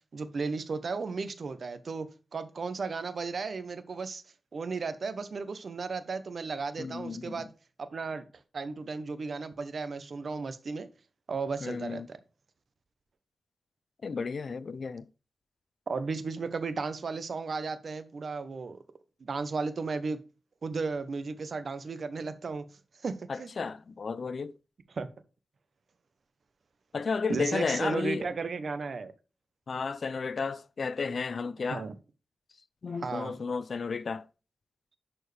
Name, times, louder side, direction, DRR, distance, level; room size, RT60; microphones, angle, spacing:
voice 1, 0.1-4.2 4.5-7.5 7.8-8.3 8.5-10.9 11.3-12.2 15.9-18.8 19.2-20.2 20.6-22.7 23.0-23.5 24.9-25.1 27.3-29.1 31.7-31.9 33.0-33.4, right 4 dB, 60° right, 0.8 m, -34 dB
voice 2, 6.8-7.4 11.6-12.1 14.0-15.1 23.3-24.5 26.9-28.2 29.7-31.8 32.8-34.3, left 5 dB, 55° left, 0.4 m, -33 dB
11.0 x 4.4 x 3.3 m
wide cardioid pair, 115°, 0 cm